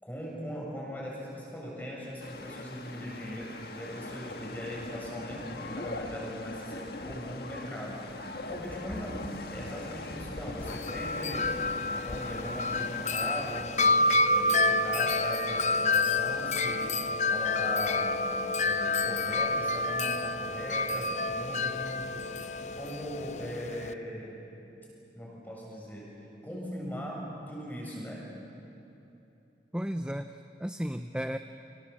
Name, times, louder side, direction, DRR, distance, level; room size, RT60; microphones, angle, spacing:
voice 1, 0.0-13.9 14.3-17.0 17.3-18.3 18.6-22.3 22.7-24.4 25.1-26.1 26.4-28.3, equal, 10° left, -3 dB, 7.4 m, -40 dB
sound 1, 2.2-13.6, left 2 dB, 65° left, 1.6 m, -41 dB
Wind chime, 10.6-23.9, left 2 dB, 40° left, 0.6 m, -29 dB
voice 2, 29.7-31.4, equal, 5° right, 8 dB, 0.5 m, -34 dB
30.0 x 26.0 x 7.3 m, 2.9 s
head